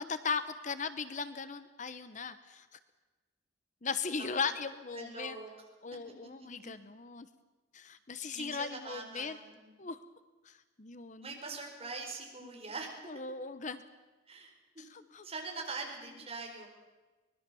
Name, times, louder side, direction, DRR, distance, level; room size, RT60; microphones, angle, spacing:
voice 1, 0.2-2.8 3.8-5.4 5.8-7.3 7.7-9.4 9.8-10.0 10.4-11.4 12.4-12.5 13.1-13.8 14.8-15.2, left 5 dB, 40° left, 12 dB, 0.9 m, -38 dB
voice 2, 4.9-5.5 6.6-6.7 8.3-9.7 11.2-12.9 14.3-14.8 15.2-16.7, right 3 dB, 30° right, 1 dB, 5.0 m, -43 dB
24.0 x 20.5 x 7.1 m, 1.2 s
head